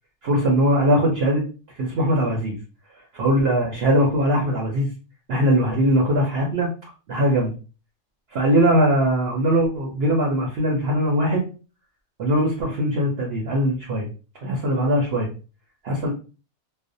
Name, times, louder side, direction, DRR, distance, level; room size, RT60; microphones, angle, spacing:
voice 1, 0.2-1.4 1.8-2.6 3.2-4.9 5.3-6.7 7.1-7.5 8.3-11.4 12.2-14.1 14.4-15.3 15.8-16.1, equal, 60° right, -1 dB, 0.7 m, -20 dB
2.4 x 2.0 x 2.5 m, 0.35 s
omnidirectional pair, 1.5 m